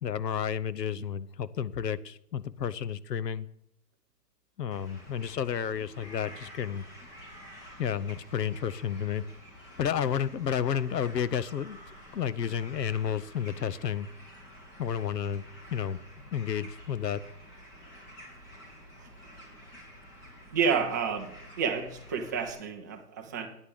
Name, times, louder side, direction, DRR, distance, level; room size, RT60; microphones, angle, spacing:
voice 1, 0.0-3.5 4.6-6.9 7.8-9.2 9.8-11.8 12.1-14.1 14.8-16.0 16.2-17.2, left 8 dB, 80° left, 16 dB, 0.9 m, -31 dB
sound 1, 4.7-22.5, equal, 25° left, 2.8 m, -50 dB
voice 2, 20.5-21.3 21.6-23.5, right 6 dB, 10° right, 3 dB, 0.5 m, -30 dB
9.6 x 8.3 x 7.8 m, 0.72 s
hypercardioid pair, 140°, 49 cm